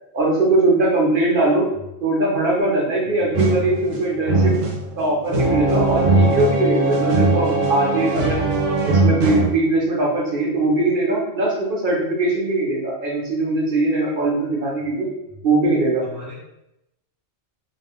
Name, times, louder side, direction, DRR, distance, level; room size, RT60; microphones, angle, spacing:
voice 1, 0.1-1.7 2.0-4.5 5.0-8.4 8.9-15.1 15.4-16.0, right 2 dB, 50° right, -3 dB, 0.9 m, -20 dB
sound 1, 3.3-9.5, right 2 dB, 75° right, 1.0 m, -20 dB
voice 2, 16.0-16.3, left 2 dB, 45° left, -8 dB, 0.7 m, -38 dB
2.5 x 2.2 x 3.4 m, 0.88 s
omnidirectional pair, 1.3 m